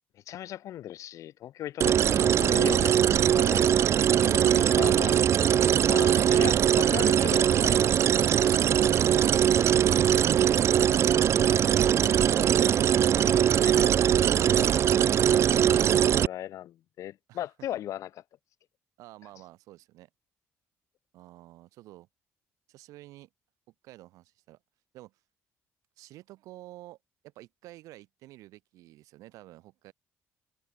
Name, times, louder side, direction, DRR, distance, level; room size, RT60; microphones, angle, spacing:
voice 1, 0.3-3.0 3.3-3.9 4.2-5.2 5.9-8.6 13.6-13.9 15.1-15.2 15.5-18.1, left 12 dB, 70° left, 1.2 m, -38 dB
sound 1, 1.8-16.3, right 9 dB, 55° right, 0.4 m, -22 dB
voice 2, 5.0-6.0 7.4-7.9 8.3-9.0 10.1-14.2 17.3-17.7 19.0-20.1 21.1-22.1 22.7-23.3 23.8-24.6 24.9-25.2 26.0-27.0 27.2-29.9, right 17 dB, 85° right, 5.1 m, -50 dB
supercardioid pair, 70°, 6 cm